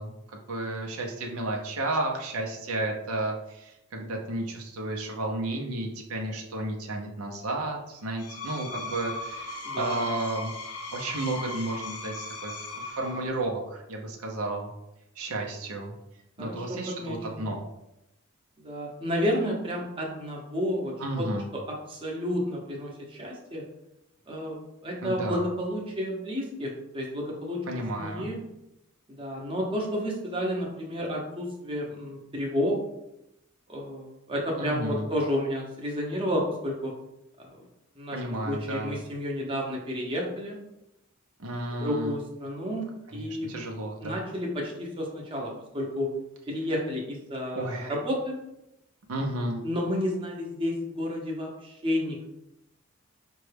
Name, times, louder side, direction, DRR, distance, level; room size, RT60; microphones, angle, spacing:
voice 1, 0.0-10.5 10.9-14.7 15.2-15.9 16.4-17.6 21.0-21.5 25.0-25.4 27.7-28.3 34.6-35.1 38.1-38.9 41.4-42.1 43.1-44.2 47.5-47.9 49.1-49.6, right 2 dB, 85° right, 1 dB, 0.7 m, -32 dB
Screech, 8.0-13.5, left 2 dB, 85° left, 0.6 m, -38 dB
voice 2, 9.6-10.1 16.4-17.5 18.6-21.6 21.9-23.6 24.3-24.6 24.8-27.6 27.9-28.4 29.1-32.8 33.7-36.9 37.4-37.5 38.0-40.6 41.8-42.8 43.1-43.5 44.0-46.1 46.5-48.4 49.6-52.3, equal, 25° right, -2 dB, 0.8 m, -31 dB
5.1 x 2.3 x 3.3 m, 0.86 s
head